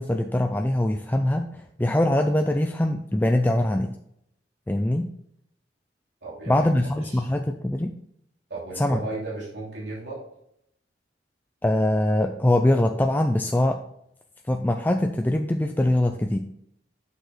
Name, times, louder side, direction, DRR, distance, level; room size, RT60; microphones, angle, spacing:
voice 1, 0.0-3.9 4.7-5.1 6.5-7.9 8.8-9.0 11.6-13.8 14.5-16.4, left 1 dB, 10° left, 4 dB, 0.4 m, -23 dB
voice 2, 6.2-6.7 7.0-7.3 8.5-10.2, right 2 dB, 80° right, -6 dB, 3.1 m, -35 dB
8.0 x 6.6 x 3.3 m, 0.74 s
head